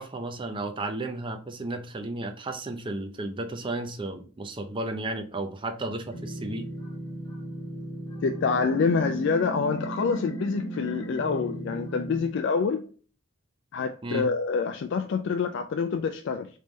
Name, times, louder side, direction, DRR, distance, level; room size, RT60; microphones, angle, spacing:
voice 1, 0.0-6.7 14.0-14.3, right 2 dB, 25° right, 0.5 m, -33 dB
sound 1, 6.1-12.3, right 2 dB, 20° left, 1.0 m, -36 dB
voice 2, 8.2-12.8 13.7-16.5, left 5 dB, 60° left, 0.3 m, -26 dB
3.5 x 3.3 x 3.9 m
head